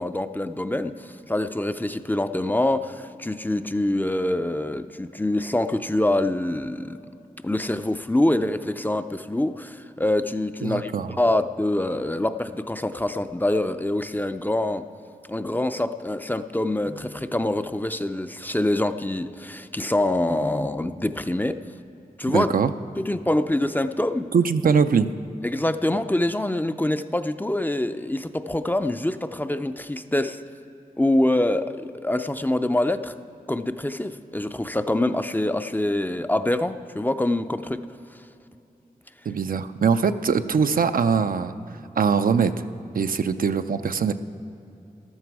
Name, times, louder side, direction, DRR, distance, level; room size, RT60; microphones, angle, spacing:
voice 1, 0.0-7.0 7.4-10.9 11.2-14.9 15.3-21.6 22.2-22.5 23.0-24.3 25.4-30.4 31.0-33.1 33.5-37.9, left 1 dB, 10° left, 10 dB, 0.4 m, -25 dB
voice 2, 10.6-11.1 22.3-22.7 24.3-25.1 39.3-41.5 42.0-42.6 43.0-44.1, right 6 dB, 70° right, 9 dB, 0.5 m, -22 dB
14.0 x 12.0 x 4.7 m, 2.8 s
cardioid pair, 60°, 15 cm